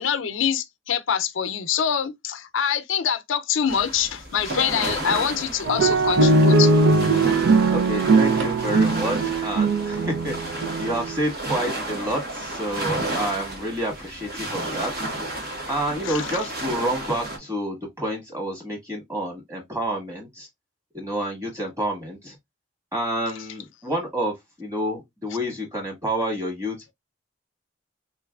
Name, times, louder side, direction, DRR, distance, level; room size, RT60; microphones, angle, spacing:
voice 1, 0.0-6.7 16.1-16.3, left 8 dB, 85° left, 0.5 m, -25 dB
sound 1, 3.7-17.4, right 1 dB, 50° right, 1.4 m, -32 dB
sound 2, 5.7-11.2, right 3 dB, 80° right, 0.5 m, -20 dB
voice 2, 7.7-15.1 15.7-20.5 20.9-22.4 22.9-26.9, right 1 dB, 15° right, 1.8 m, -29 dB
3.8 x 3.1 x 2.3 m
head